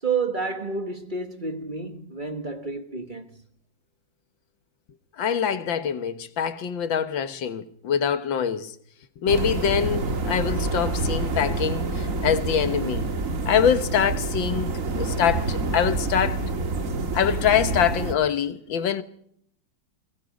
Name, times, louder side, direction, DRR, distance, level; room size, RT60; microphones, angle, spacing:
voice 1, 0.0-3.3, right 4 dB, 25° right, 1.7 m, -29 dB
voice 2, 5.2-8.7 9.2-13.1 13.5-16.5 17.1-19.0, left 8 dB, 85° left, 2.0 m, -24 dB
sound 1, 9.3-18.1, right 3 dB, 45° right, 1.9 m, -27 dB
29.5 x 22.5 x 5.3 m
omnidirectional pair, 2.0 m